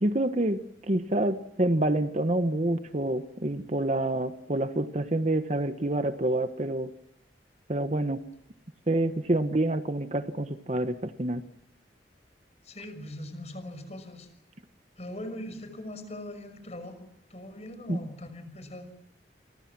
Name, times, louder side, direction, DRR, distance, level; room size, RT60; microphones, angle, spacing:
voice 1, 0.0-6.9 7.7-8.2 8.9-11.5 17.9-18.0, right 1 dB, 40° right, 9 dB, 1.2 m, -27 dB
voice 2, 12.6-14.3 15.0-18.9, left 1 dB, 40° left, 10 dB, 6.0 m, -41 dB
29.0 x 24.5 x 6.1 m, 0.80 s
head